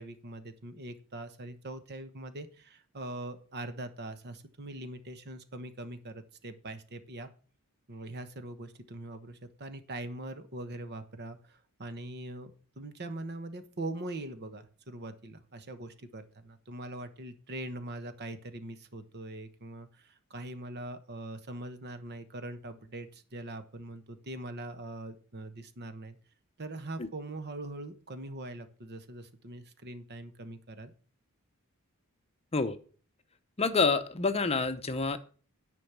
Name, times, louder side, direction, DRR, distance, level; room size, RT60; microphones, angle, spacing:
voice 1, 0.0-7.3 7.9-26.2 26.6-30.9, right 2 dB, 50° right, 10 dB, 1.2 m, -42 dB
voice 2, 33.6-35.2, left 4 dB, 30° left, 10 dB, 0.7 m, -27 dB
10.0 x 5.3 x 7.3 m, 0.40 s
head